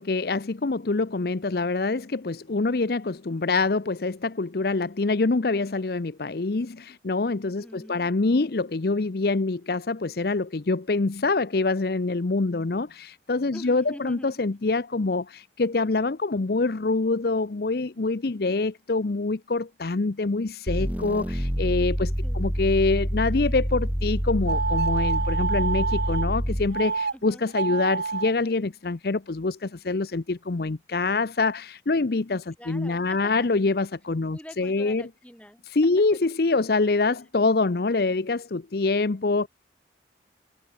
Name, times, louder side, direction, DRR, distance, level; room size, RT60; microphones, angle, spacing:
voice 1, 0.1-2.0 2.5-3.0 3.3-4.1 4.4-6.1 6.4-6.6 7.1-7.6 7.9-12.9 13.3-15.2 15.6-21.2 21.6-21.9 22.4-26.9 27.2-29.2 29.4-29.5 29.9-30.2 30.5-31.5 31.9-32.4 32.7-35.0 35.8-38.4 38.7-39.4, left 3 dB, 55° left, 0.7 m, -25 dB
voice 2, 7.6-8.6 13.5-14.4 22.0-22.4 27.1-27.4 32.6-33.5 34.3-35.7 36.0-36.1 37.1-37.2, equal, 5° left, 5.9 m, -45 dB
sound 1, 20.7-26.8, equal, 10° right, 1.3 m, -27 dB
sound 2, 24.5-26.3 26.7-27.1 27.5-28.3, right 4 dB, 60° right, 0.9 m, -27 dB
head